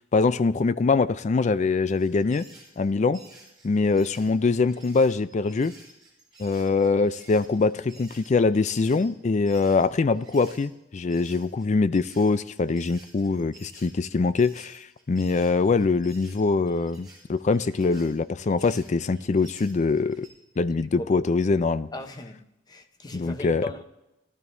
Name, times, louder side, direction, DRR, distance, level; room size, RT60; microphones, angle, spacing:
voice 1, 0.0-2.4 2.8-3.2 3.6-5.7 6.4-20.3 20.6-21.9 23.1-23.7, left 4 dB, 40° left, 0.4 m, -23 dB
sound 1, 1.9-10.7 11.1-20.3, right 2 dB, ahead, 4.7 m, -52 dB
voice 2, 21.9-22.4 22.7-23.8, left 1 dB, 20° left, 0.8 m, -37 dB
18.0 x 12.5 x 2.6 m
head